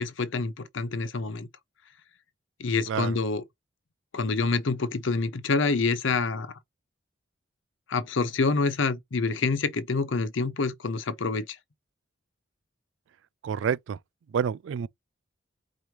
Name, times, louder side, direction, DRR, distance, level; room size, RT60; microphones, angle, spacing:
voice 1, 0.0-1.5 2.6-3.4 4.1-6.5 7.9-11.6, left 4 dB, 70° left, 0.7 m, -27 dB
voice 2, 13.4-14.0 14.3-14.9, right 7 dB, 70° right, 0.3 m, -28 dB
4.9 x 3.0 x 2.8 m
head